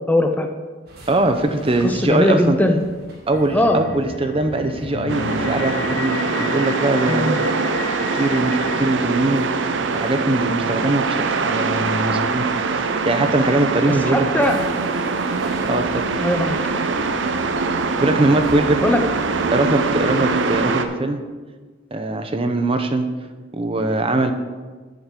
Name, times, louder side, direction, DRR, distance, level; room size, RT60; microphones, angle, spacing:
voice 1, 0.1-0.5 1.8-2.8 3.5-3.8 7.1-7.4 13.9-14.6 16.2-16.6 18.8-19.1, left 1 dB, 10° left, 5 dB, 0.4 m, -19 dB
sound 1, 0.9-20.7, equal, 55° right, 1.9 m, -42 dB
voice 2, 1.1-2.6 3.3-7.3 8.0-12.5 12.7-14.3 15.7-16.0 18.0-18.9 19.5-21.2 21.9-23.1 23.5-24.3, right 2 dB, 30° right, 7 dB, 0.6 m, -21 dB
sound 2, 3.3-9.0, left 5 dB, 85° left, 0.6 m, -33 dB
sound 3, 5.1-20.9, right 4 dB, 85° right, 0.6 m, -23 dB
7.2 x 5.2 x 7.4 m, 1.4 s
head